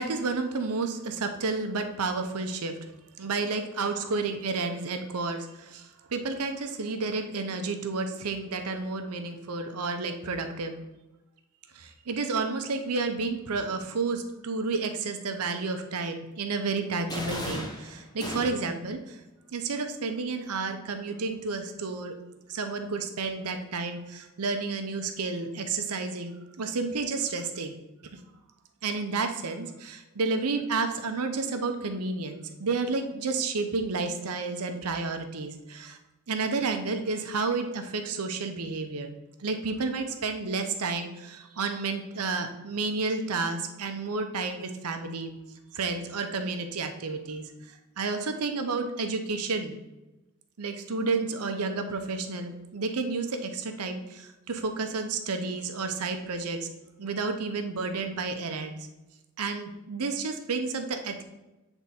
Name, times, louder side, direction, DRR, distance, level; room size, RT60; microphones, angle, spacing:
voice 1, 0.0-2.7 3.2-10.7 11.7-19.2 19.5-22.1 22.5-27.7 28.1-28.2 28.8-36.0 36.3-39.1 39.4-45.3 45.7-49.8 50.6-56.7 57.0-58.9 59.4-61.2, right 4 dB, 85° right, 6 dB, 0.7 m, -31 dB
sound 1, 17.1-18.8, left 1 dB, 20° left, 0.8 m, -36 dB
7.9 x 3.5 x 4.2 m, 1.0 s
head